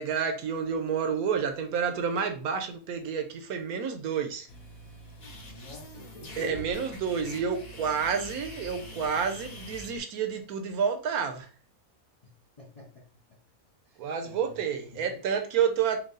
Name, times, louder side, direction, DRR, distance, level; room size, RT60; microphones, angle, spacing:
voice 1, 0.0-4.5 6.4-11.5 14.0-16.0, right 6 dB, 70° right, 6 dB, 1.1 m, -29 dB
sound 1, 4.5-10.0, right 2 dB, 60° left, 2.2 m, -49 dB
sound 2, 5.2-9.9, left 2 dB, 80° left, 2.1 m, -46 dB
voice 2, 5.5-6.7 12.2-12.3 12.6-13.1 13.9-14.6 14.9-15.2, equal, 40° left, -1 dB, 0.5 m, -47 dB
4.6 x 2.3 x 3.8 m, 0.39 s
omnidirectional pair, 1.6 m